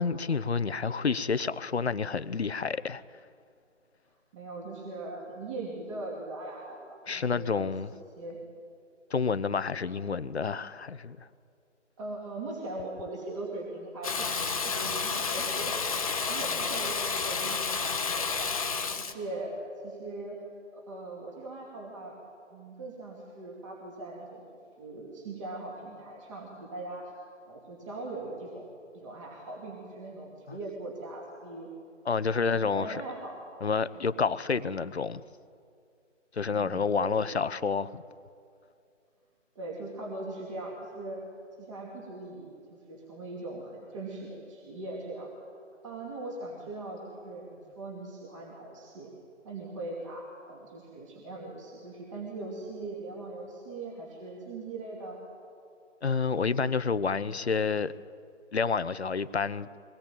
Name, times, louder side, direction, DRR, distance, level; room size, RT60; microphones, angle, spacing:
voice 1, 0.0-3.0 7.1-7.9 9.1-11.3 30.5-30.6 32.1-33.0 33.6-35.2 36.3-38.0 56.0-57.9 58.5-59.7, left 5 dB, 60° left, 0.9 m, -29 dB
voice 2, 4.3-7.7 8.2-8.4 12.0-14.3 14.6-18.6 18.9-19.5 19.8-20.4 20.7-22.1 22.5-24.4 24.8-27.0 27.4-28.7 28.9-31.7 32.2-33.4 33.9-34.0 36.5-37.2 39.5-41.2 41.6-45.3 45.8-49.1 49.4-55.2, right 2 dB, 25° right, 2.8 m, -40 dB
Water tap faucet / Bathtub (filling or washing), 14.0-19.1, left 5 dB, 30° left, 1.1 m, -30 dB
23.5 x 19.5 x 9.0 m
figure-of-eight pair, 150°, 37 cm